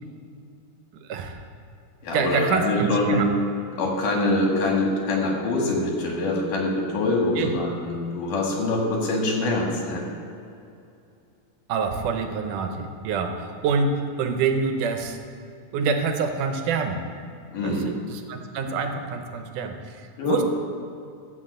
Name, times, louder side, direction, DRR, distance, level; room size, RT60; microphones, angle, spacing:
voice 1, 1.0-1.4 2.1-3.3 7.4-7.5 11.7-15.2 15.7-17.0 17.6-20.4, right 5 dB, 80° right, 5 dB, 2.4 m, -26 dB
voice 2, 2.0-3.2 3.7-10.0 17.5-17.9 20.2-20.4, left 2 dB, 80° left, -1 dB, 3.4 m, -24 dB
14.0 x 4.8 x 7.8 m, 2.6 s
omnidirectional pair, 3.7 m